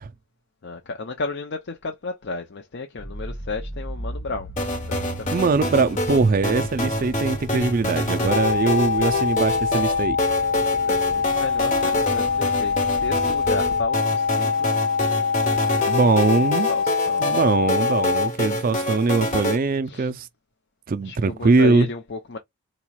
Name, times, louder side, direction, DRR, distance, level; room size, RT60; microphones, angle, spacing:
voice 1, 0.6-4.5 4.9-6.0 10.7-14.7 16.2-17.4 19.9-20.1 21.0-22.4, left 3 dB, 50° left, 0.6 m, -33 dB
sound 1, 3.0-13.9, equal, 10° left, 0.7 m, -38 dB
sound 2, 4.6-19.6, left 1 dB, 35° left, 1.1 m, -27 dB
voice 2, 5.3-10.2 15.9-16.7 17.2-20.3 20.9-21.9, right 4 dB, 40° right, 0.4 m, -21 dB
sound 3, 8.3-18.3, left 5 dB, 70° left, 1.0 m, -24 dB
4.0 x 3.0 x 2.3 m
head